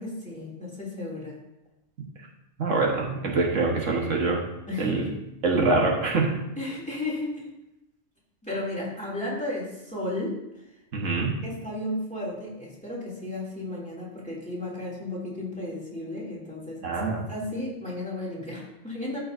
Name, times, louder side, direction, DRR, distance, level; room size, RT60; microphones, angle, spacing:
voice 1, 0.0-1.3 4.7-5.1 6.6-7.5 8.4-10.4 11.4-16.8 17.3-19.2, left 1 dB, 5° left, -6 dB, 2.5 m, -33 dB
voice 2, 2.6-4.4 4.8-5.1 5.4-6.3 10.9-11.3 16.8-17.3, right 3 dB, 80° right, -1 dB, 1.6 m, -24 dB
13.5 x 5.3 x 2.6 m, 0.91 s
omnidirectional pair, 1.3 m